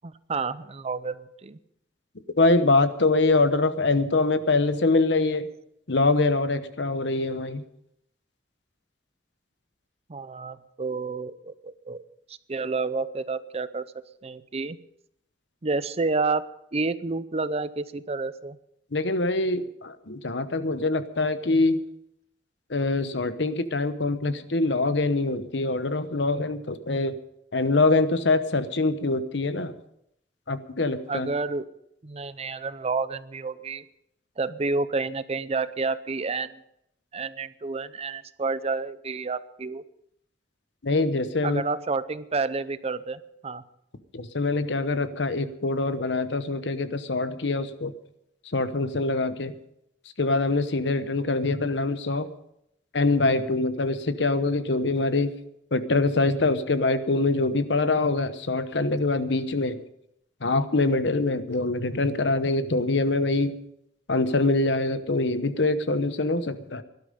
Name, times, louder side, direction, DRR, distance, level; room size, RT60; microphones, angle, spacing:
voice 1, 0.0-1.6 10.1-12.0 12.3-13.9 14.2-14.8 15.6-16.4 16.7-18.6 31.1-31.6 32.0-33.9 34.4-36.6 37.1-39.8 41.4-43.6, right 3 dB, 35° right, 15 dB, 0.6 m, -29 dB
voice 2, 2.4-5.5 5.9-7.6 18.9-21.8 22.7-27.1 27.5-29.7 30.5-31.3 40.8-41.6 44.1-47.9 48.5-49.5 50.2-52.3 52.9-55.3 55.7-59.8 60.4-63.6 64.1-66.8, left 3 dB, 70° left, 12 dB, 1.0 m, -24 dB
18.0 x 12.0 x 5.2 m, 0.78 s
head